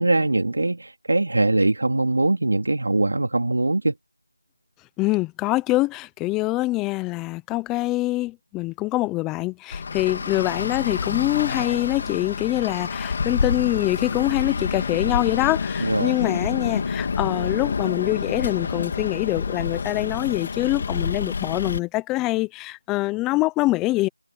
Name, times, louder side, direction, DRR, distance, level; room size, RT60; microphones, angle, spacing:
voice 1, 0.0-3.9 15.8-16.1, right 2 dB, 55° right, 2.3 m, -22 dB
voice 2, 5.0-24.1, left 19 dB, 5° left, 0.5 m, -24 dB
Traffic noise roadway noise, 9.7-21.8, left 5 dB, 20° left, 2.5 m, -28 dB
figure-of-eight pair, 180°, 0 cm